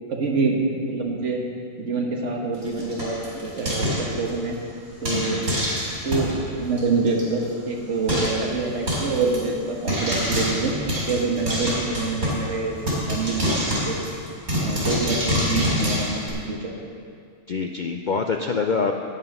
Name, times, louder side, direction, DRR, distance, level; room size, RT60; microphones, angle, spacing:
voice 1, 0.1-0.6 0.9-1.4 1.8-4.6 5.0-5.5 6.0-10.7 11.1-14.0 14.6-16.7, right 3 dB, 55° right, 0 dB, 1.7 m, -26 dB
Frying (food), 2.5-4.5 5.0-6.4 6.8-6.9 7.1-7.2 7.5-7.6 8.1-8.4 8.9-9.4 9.9-12.5 12.9-16.3, equal, 80° right, 4.3 m, -26 dB
voice 2, 5.1-5.4 17.5-18.9, left 5 dB, 70° left, 4 dB, 0.4 m, -25 dB
11.5 x 9.6 x 5.5 m, 2.3 s
omnidirectional pair, 1.5 m